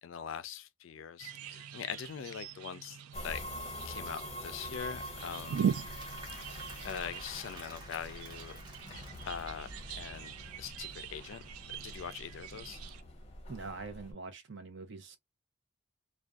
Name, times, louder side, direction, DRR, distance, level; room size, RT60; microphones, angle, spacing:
voice 1, 0.0-3.0 3.2-3.4 3.8-5.8 6.8-8.6 8.9-11.4 11.8-12.8, left 8 dB, 65° left, 0.3 m, -42 dB
sound 1, 1.2-13.0, right 7 dB, 90° right, 0.4 m, -41 dB
sound 2, 3.1-14.1, equal, 30° left, 0.6 m, -45 dB
Applause / Crowd, 4.1-10.2, right 1 dB, 20° right, 0.8 m, -52 dB
voice 2, 13.5-15.2, right 3 dB, 55° right, 0.6 m, -44 dB
2.5 x 2.2 x 2.2 m
head